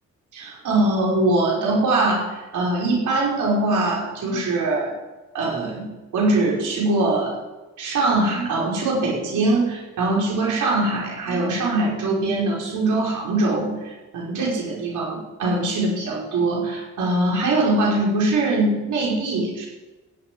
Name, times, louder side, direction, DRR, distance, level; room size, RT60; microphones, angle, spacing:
voice 1, 0.3-4.9 5.3-7.3 7.8-19.7, right 2 dB, 85° right, -3 dB, 5.6 m, -22 dB
16.0 x 8.2 x 9.7 m, 1.1 s
cardioid pair, 80°, 30 cm